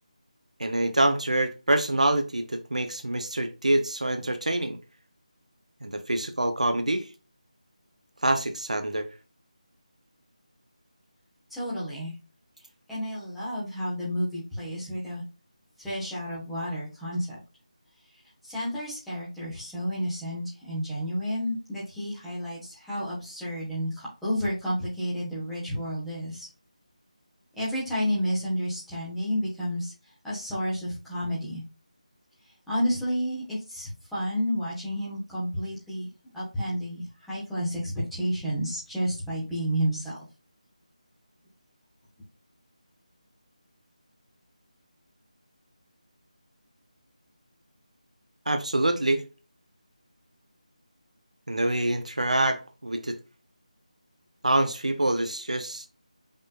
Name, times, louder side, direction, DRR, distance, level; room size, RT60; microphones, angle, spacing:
voice 1, 0.6-4.8 5.8-7.1 8.2-9.1 48.5-49.2 51.5-53.2 54.4-55.9, right 1 dB, 65° right, 0.7 m, -26 dB
voice 2, 11.5-12.1 12.9-15.2 15.8-17.4 18.4-26.5 27.5-29.9 30.2-31.6 32.7-36.1 36.3-40.2, equal, ahead, 1.3 m, -31 dB
5.2 x 3.7 x 2.4 m
figure-of-eight pair, 160°, 4 cm